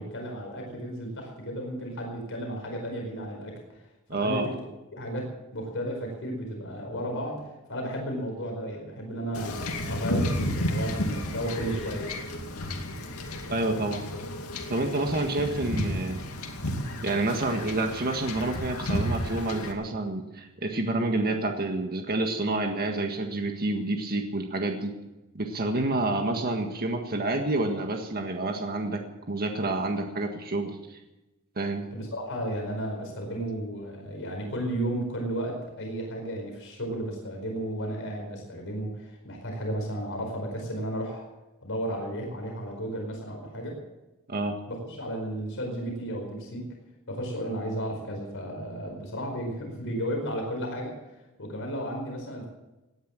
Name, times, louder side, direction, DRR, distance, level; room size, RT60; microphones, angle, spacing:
voice 1, 0.0-4.5 4.9-12.1 31.9-41.2 41.6-43.7 44.7-46.7 47.1-50.9 51.4-52.5, right 1 dB, 60° left, 1 dB, 4.8 m, -33 dB
voice 2, 4.1-4.5 13.5-14.0 14.7-16.2 17.0-24.9 25.3-29.0 29.3-31.0 31.6-31.9 44.3-44.6, right 2 dB, 45° right, 4 dB, 1.7 m, -28 dB
Wind / Ocean / Boat Water vehicle, 9.3-19.7, left 1 dB, 80° left, 2.4 m, -32 dB
18.0 x 10.0 x 7.5 m, 1.0 s
head